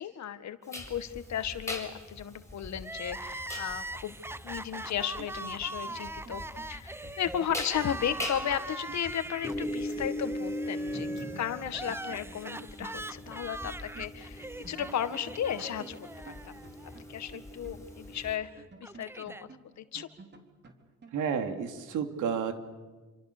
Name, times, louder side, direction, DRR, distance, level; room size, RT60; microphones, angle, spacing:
voice 1, 0.0-4.1 4.4-6.4 6.7-16.6 17.1-18.5 18.8-20.1, left 9 dB, 65° left, 10 dB, 1.9 m, -35 dB
sound 1, 0.7-18.3, left 1 dB, 10° left, 7.9 m, -40 dB
Crying sobbing, 2.8-17.0 17.2-17.3 18.3-19.5, right 2 dB, 10° right, 0.8 m, -42 dB
sound 2, 4.7-10.5 10.7-10.8 11.2-14.1 14.4-18.2 18.6-21.3, right 4 dB, 35° right, 3.9 m, -52 dB
voice 2, 21.1-22.5, right 7 dB, 80° right, 7 dB, 2.9 m, -31 dB
28.0 x 26.0 x 7.0 m, 1.3 s
cardioid pair, 90°, 30 cm